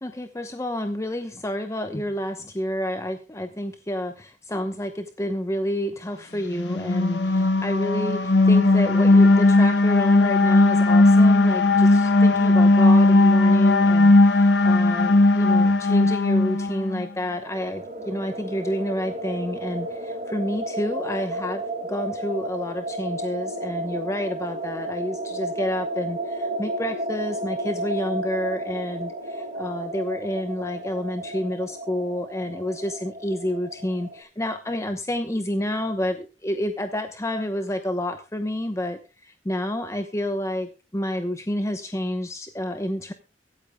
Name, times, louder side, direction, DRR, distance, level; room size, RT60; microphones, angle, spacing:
voice 1, 0.0-21.6 21.9-43.1, left 1 dB, 15° left, 7 dB, 0.9 m, -29 dB
sound 1, 6.5-17.0, left 2 dB, 80° left, 1.4 m, -17 dB
sound 2, 17.3-34.2, right 1 dB, 45° right, 3.0 m, -33 dB
24.0 x 8.6 x 2.2 m, 0.32 s
head